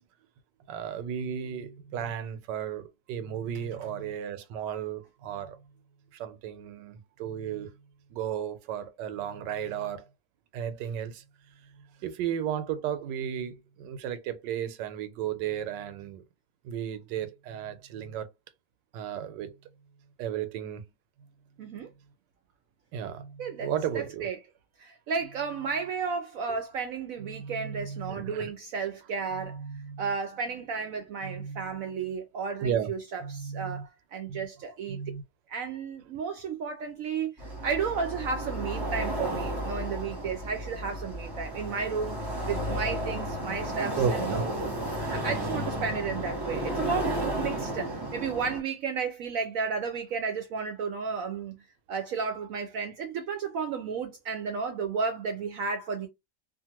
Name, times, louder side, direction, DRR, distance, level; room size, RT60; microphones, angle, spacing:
voice 1, 0.7-5.6 6.1-7.7 8.1-10.0 10.5-11.2 12.0-16.2 16.6-18.3 18.9-19.6 20.2-20.9 22.9-24.3 27.3-28.5 29.5-30.0 31.2-31.6 32.6-32.9 33.2-33.8 34.3-34.4 34.9-35.2 44.0-44.5, right 8 dB, 90° right, 1.3 m, -34 dB
voice 2, 21.6-21.9 23.4-24.4 24.8-29.6 30.0-35.0 35.5-42.1 42.5-44.4 45.0-51.6 51.9-56.1, right 5 dB, 75° right, 0.8 m, -33 dB
sound 1, 37.4-48.6, right 1 dB, 20° right, 0.7 m, -33 dB
2.7 x 2.5 x 2.9 m
omnidirectional pair, 1.9 m